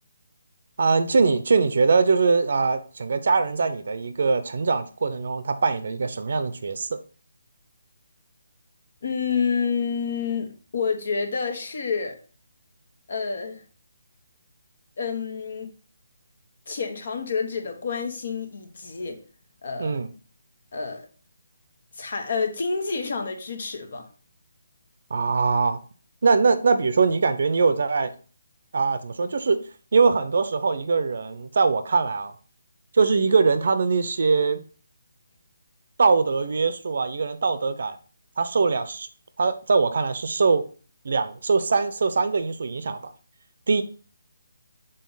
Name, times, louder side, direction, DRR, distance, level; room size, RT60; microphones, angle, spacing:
voice 1, 0.8-7.0 19.8-20.1 25.1-25.8 26.2-28.1 28.7-29.6 29.9-32.3 32.9-34.6 36.0-38.0 38.4-39.1 39.4-40.6 41.0-43.1 43.7-43.8, right 4 dB, 60° right, 0.7 m, -22 dB
voice 2, 9.0-12.2 13.1-13.6 15.0-15.7 16.7-19.2 19.6-20.0 20.7-21.1 21.9-24.0, left 5 dB, 55° left, 1.3 m, -28 dB
6.5 x 3.9 x 4.0 m
hypercardioid pair, 165°, 0 cm